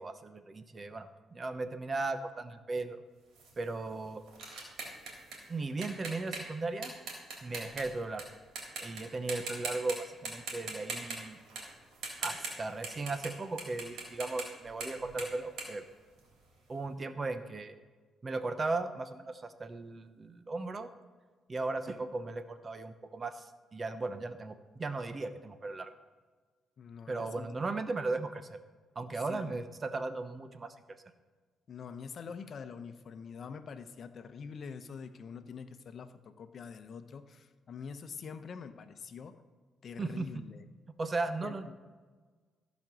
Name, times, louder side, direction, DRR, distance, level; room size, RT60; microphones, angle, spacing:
voice 1, 0.0-3.0 3.6-4.2 5.5-6.9 7.4-8.3 8.8-11.4 12.2-15.8 16.7-17.7 18.2-20.9 21.5-23.5 23.7-25.9 27.1-28.6 29.0-30.7 40.0-40.5 41.0-41.6, right 3 dB, 35° right, 10 dB, 0.9 m, -36 dB
sound 1, 3.3-8.2 8.6-9.0 9.3-9.9 10.2-13.3 13.6-16.6, right 4 dB, 80° right, 3.4 m, -41 dB
voice 2, 26.8-27.5 29.3-29.6 31.7-39.4 39.8-40.6 41.4-41.7, left 6 dB, 55° left, 10 dB, 0.8 m, -45 dB
15.0 x 5.3 x 6.2 m, 1.5 s
cardioid pair, 90°, 0 cm